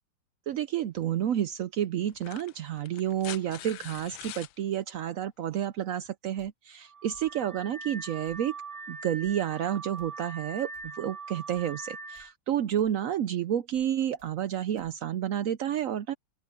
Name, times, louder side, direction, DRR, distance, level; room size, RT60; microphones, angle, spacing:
voice 1, 0.5-8.5 8.9-16.1, right 10 dB, 75° right, 0.7 m, -30 dB
sound 1, 1.0-1.1 2.1-4.5 6.1-6.2, left 15 dB, 90° left, 1.4 m, -44 dB
sound 2, 6.4-6.5 7.1-7.3 8.2-8.5 9.2-9.4 10.0-10.1 10.7-10.9 11.5-11.7 12.1-12.3 12.8-13.0 13.7-13.9 14.2-14.3 14.8-14.9, right 2 dB, 55° right, 7.9 m, -60 dB
Car / Alarm, 6.8-12.3, right 4 dB, 15° right, 3.4 m, -42 dB
open air
omnidirectional pair, 2.0 m